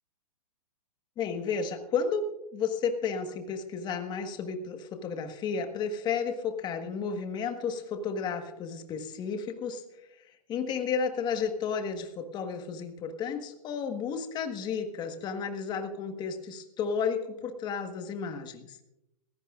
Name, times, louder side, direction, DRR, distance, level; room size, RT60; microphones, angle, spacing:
voice 1, 1.2-2.2 2.5-9.8 10.5-18.8, left 6 dB, 20° left, 6 dB, 1.4 m, -32 dB
20.0 x 16.0 x 2.5 m, 0.88 s
hypercardioid pair, 140°, 19 cm